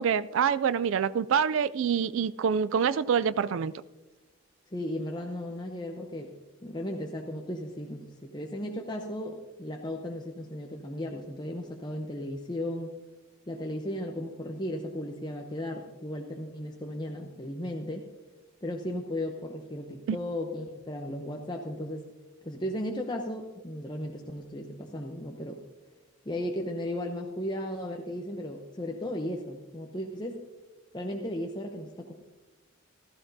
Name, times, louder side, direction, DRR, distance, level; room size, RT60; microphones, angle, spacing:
voice 1, 0.0-3.7 20.1-20.2, right 7 dB, 65° right, 16 dB, 0.3 m, -26 dB
voice 2, 4.7-6.3 6.6-12.9 13.5-18.1 18.6-22.0 22.4-25.6 26.3-30.4 30.9-32.1, left 1 dB, 20° left, 1 dB, 0.7 m, -35 dB
15.0 x 14.5 x 2.7 m, 1.1 s
head